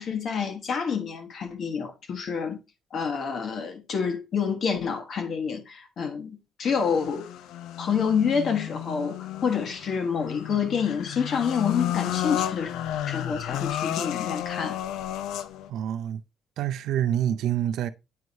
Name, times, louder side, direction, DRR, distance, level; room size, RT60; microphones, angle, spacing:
voice 1, 0.0-2.6 2.9-7.3 7.8-12.7 13.1-14.8, left 6 dB, 55° left, 1.3 m, -28 dB
sound 1, 6.6-15.7, left 12 dB, 85° left, 0.4 m, -32 dB
voice 2, 15.7-16.2 16.6-17.9, right 11 dB, 80° right, 0.5 m, -27 dB
8.9 x 4.7 x 2.6 m
cardioid pair, 110°, 0 cm